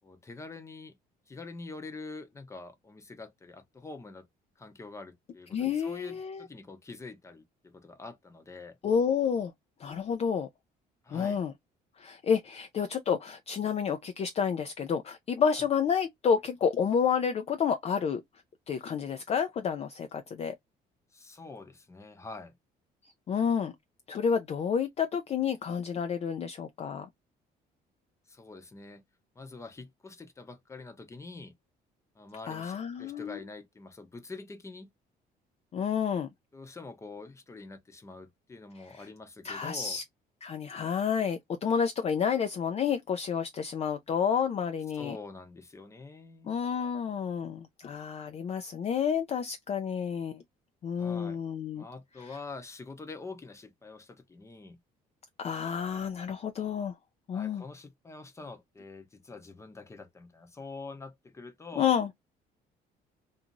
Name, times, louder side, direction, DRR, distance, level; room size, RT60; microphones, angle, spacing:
voice 1, 0.0-1.0 1.3-4.3 4.6-8.8 11.0-11.4 15.6-15.7 21.1-22.6 28.3-29.0 29.3-31.5 32.1-34.9 36.5-40.0 44.9-46.5 51.0-51.4 51.7-54.8 57.3-61.9, left 3 dB, 15° left, 0.8 m, -45 dB
voice 2, 5.5-6.4 8.8-9.5 9.8-10.5 11.1-11.5 12.0-18.2 18.7-20.5 23.3-23.7 24.1-27.1 32.5-33.4 35.7-36.3 38.9-39.1 39.4-40.0 40.4-45.2 46.4-50.4 50.8-51.8 55.4-56.9 57.3-57.6 61.8-62.1, left 7 dB, 40° left, 0.4 m, -30 dB
2.6 x 2.4 x 2.8 m
cardioid pair, 110°, 17 cm